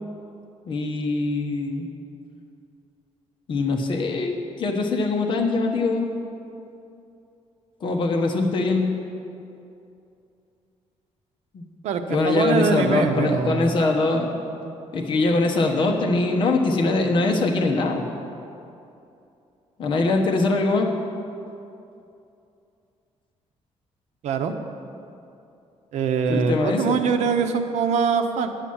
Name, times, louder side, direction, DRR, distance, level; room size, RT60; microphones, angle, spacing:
voice 1, 0.7-1.9 3.5-6.1 7.8-8.9 11.5-11.7 12.1-14.4 14.9-18.1 19.8-20.9 26.3-27.0, left 3 dB, 45° left, 2 dB, 1.1 m, -22 dB
voice 2, 11.8-13.8 24.2-24.5 25.9-28.5, right 6 dB, 85° right, 7 dB, 0.8 m, -23 dB
9.3 x 7.5 x 7.1 m, 2.7 s
cardioid pair, 165°, 11 cm